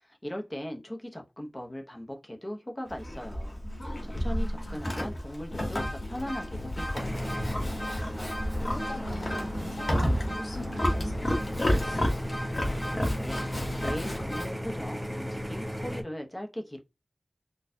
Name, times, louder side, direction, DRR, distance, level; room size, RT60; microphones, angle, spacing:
voice 1, 0.0-3.6 4.0-7.5 12.9-16.8, equal, 20° left, 0.8 m, -39 dB
Livestock farm animals working animals, 2.9-14.5, equal, 45° left, 1.1 m, -31 dB
voice 2, 3.6-4.8 7.4-7.5 8.6-12.1, left 1 dB, 60° left, 1.3 m, -44 dB
sound 1, 5.4-14.4, left 1 dB, 90° left, 1.6 m, -38 dB
sound 2, 6.9-16.0, equal, 10° right, 0.5 m, -36 dB
4.1 x 2.4 x 2.7 m
wide cardioid pair, 65°, 0 cm